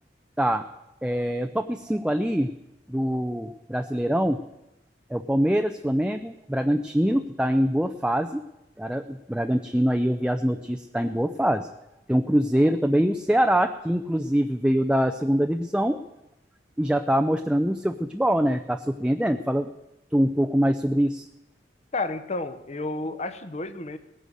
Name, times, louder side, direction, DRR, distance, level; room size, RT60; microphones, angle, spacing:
voice 1, 1.0-2.5 2.9-4.4 5.1-8.4 8.8-11.7 12.1-16.0 16.8-19.7 20.1-21.3, equal, 5° right, 7 dB, 0.5 m, -24 dB
voice 2, 21.9-24.0, left 2 dB, 40° left, 11 dB, 1.0 m, -31 dB
18.5 x 10.5 x 6.4 m, 0.92 s
head